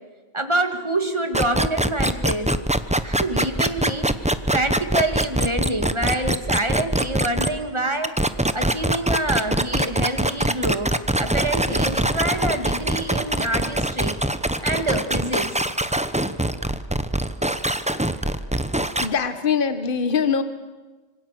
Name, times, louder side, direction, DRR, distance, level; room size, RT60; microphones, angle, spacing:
voice 1, 0.3-2.6 3.0-4.1 4.5-8.1 8.5-14.2 14.6-15.6, right 1 dB, 25° right, 6 dB, 2.3 m, -26 dB
sound 1, 1.3-7.5 8.0-19.1, right 1 dB, 5° right, 0.7 m, -23 dB
voice 2, 19.0-20.4, left 6 dB, 45° left, 10 dB, 1.4 m, -22 dB
26.0 x 24.5 x 7.7 m, 1.2 s
omnidirectional pair, 1.2 m